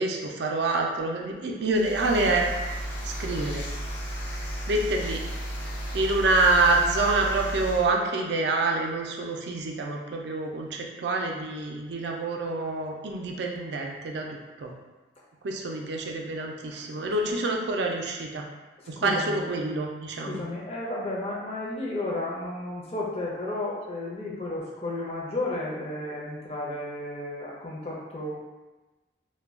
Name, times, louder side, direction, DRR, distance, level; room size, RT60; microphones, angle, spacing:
voice 1, 0.0-2.5 3.0-3.6 4.7-5.2 5.9-14.7 15.4-18.4 18.9-20.4, right 2 dB, 70° right, 1 dB, 0.4 m, -27 dB
sound 1, 1.7-7.9, equal, 75° left, 0.6 m, -34 dB
voice 2, 16.6-17.5 19.0-19.5 20.2-28.3, left 2 dB, 35° left, -4 dB, 0.6 m, -33 dB
2.2 x 2.2 x 3.5 m, 1.2 s
head